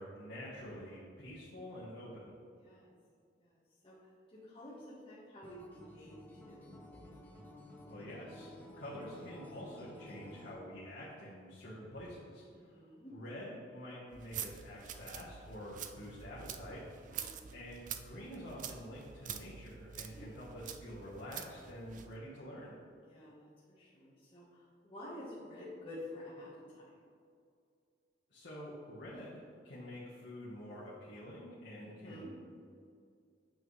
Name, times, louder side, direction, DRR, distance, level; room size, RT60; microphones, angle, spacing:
voice 1, 0.0-2.4 7.8-17.2 17.5-22.7 28.3-32.3, equal, 70° left, -8 dB, 1.2 m, -48 dB
voice 2, 2.6-2.9 3.4-3.6 3.8-4.0 4.3-6.2 6.4-7.0 12.5-13.1 17.1-17.5 19.9-20.4 23.0-27.0 31.8-32.3, left 1 dB, 30° left, -8 dB, 1.3 m, -50 dB
Acoustic guitar, 5.4-10.6, left 1 dB, 10° left, 0.9 m, -53 dB
sound 1, 14.1-22.1, right 8 dB, 45° right, 0.4 m, -47 dB
8.6 x 5.4 x 3.2 m, 2.3 s
head